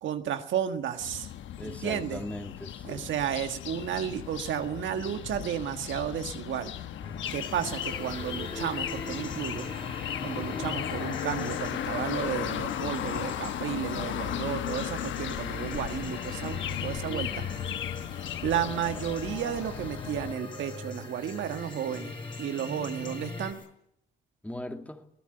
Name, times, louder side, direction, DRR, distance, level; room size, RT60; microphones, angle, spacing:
voice 1, 0.0-1.3 1.6-2.2 2.8-6.7 7.3-9.7 10.2-17.6 18.4-23.6, right 9 dB, 70° right, 1.6 m, -33 dB
sound 1, 1.0-20.3, left 10 dB, 75° left, 1.1 m, -36 dB
voice 2, 1.5-3.1 24.4-25.0, left 1 dB, 5° left, 2.4 m, -39 dB
sound 2, 7.0-23.5, left 2 dB, 25° left, 4.3 m, -41 dB
sound 3, 7.2-23.7, left 4 dB, 45° left, 6.3 m, -51 dB
23.0 x 16.5 x 7.9 m
cardioid pair, 90°, 20 cm